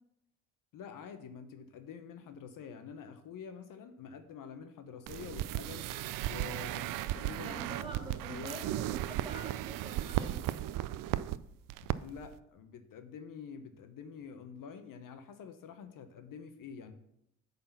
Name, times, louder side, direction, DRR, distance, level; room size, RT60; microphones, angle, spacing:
voice 1, 0.7-5.9 6.2-7.9 8.2-8.9 12.0-16.9, left 7 dB, 60° left, 8 dB, 0.8 m, -47 dB
sound 1, 5.1-11.4 11.7-12.0 12.2-12.4, right 14 dB, 60° right, 0.5 m, -35 dB
voice 2, 7.4-10.5, right 1 dB, 15° right, 1 dB, 2.4 m, -46 dB
8.5 x 4.1 x 5.7 m, 0.79 s
supercardioid pair, 65°, 37 cm